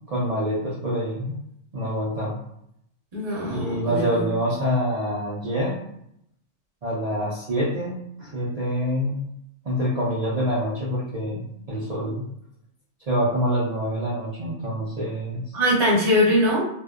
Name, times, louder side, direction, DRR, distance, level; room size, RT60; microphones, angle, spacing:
voice 1, 0.1-1.4 1.7-2.4 3.5-5.8 6.8-9.2 9.6-12.2 13.1-15.5, equal, 80° right, -6 dB, 0.3 m, -26 dB
voice 2, 3.1-4.0 15.5-16.6, equal, 35° right, -6 dB, 0.8 m, -21 dB
2.7 x 2.0 x 2.3 m, 0.75 s
omnidirectional pair, 1.3 m